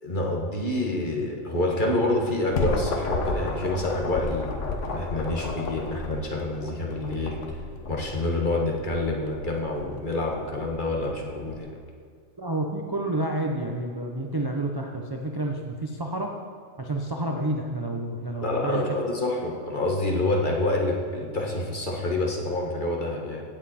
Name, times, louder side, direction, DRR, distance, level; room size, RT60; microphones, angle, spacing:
voice 1, 0.0-7.4 7.9-11.7 18.4-23.4, left 2 dB, 35° left, -1 dB, 1.6 m, -27 dB
sound 1, 2.1-11.6, left 3 dB, 60° left, 1.3 m, -33 dB
voice 2, 12.4-16.3 16.8-18.8, right 1 dB, 25° right, 0 dB, 0.6 m, -29 dB
16.0 x 7.5 x 4.3 m, 2.2 s
omnidirectional pair, 1.4 m